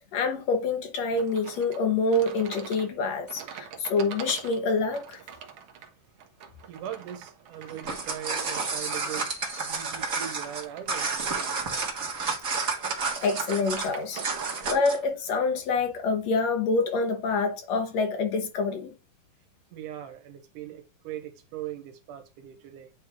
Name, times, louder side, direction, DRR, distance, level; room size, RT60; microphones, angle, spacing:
voice 1, 0.1-5.2 12.6-12.7 13.2-14.2 14.7-18.9, left 3 dB, 65° left, 2.0 m, -26 dB
sound 1, 1.2-14.8, right 7 dB, 65° right, 1.6 m, -45 dB
voice 2, 6.7-9.3 9.6-11.9 14.5-14.6 19.7-22.9, right 11 dB, 85° right, 2.5 m, -40 dB
sound 2, 7.7-15.0, right 4 dB, 40° right, 1.3 m, -31 dB
9.1 x 3.3 x 3.5 m
omnidirectional pair, 3.6 m